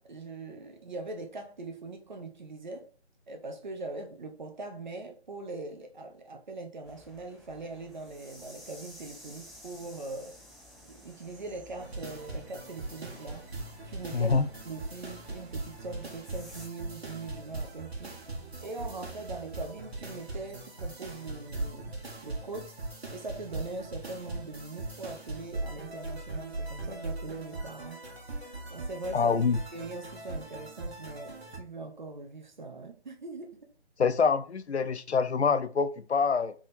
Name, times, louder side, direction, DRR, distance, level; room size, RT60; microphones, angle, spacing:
voice 1, 0.0-2.9 3.3-10.4 10.8-13.4 13.9-18.2 18.6-22.8 23.1-28.0 28.7-29.4 29.7-33.6, right 3 dB, 45° right, 0.8 m, -41 dB
sound 1, 6.8-16.7, left 1 dB, ahead, 0.4 m, -53 dB
sound 2, 11.8-31.6, right 2 dB, 70° right, 1.4 m, -40 dB
voice 2, 14.1-14.5 29.1-29.6 34.0-36.5, left 5 dB, 80° left, 0.5 m, -26 dB
3.6 x 3.1 x 4.1 m
figure-of-eight pair, 150°, 33 cm